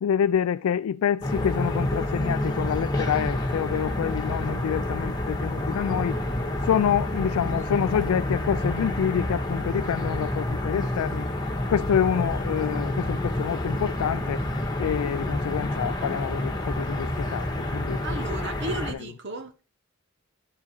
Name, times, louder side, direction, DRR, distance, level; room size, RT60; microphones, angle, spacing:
voice 1, 0.0-6.2 6.6-14.4 14.8-18.0, left 8 dB, 90° left, 0.3 m, -27 dB
sound 1, 1.2-18.9, left 1 dB, 20° left, 1.5 m, -28 dB
voice 2, 18.0-19.6, right 2 dB, 55° right, 1.1 m, -34 dB
10.5 x 4.7 x 4.4 m
head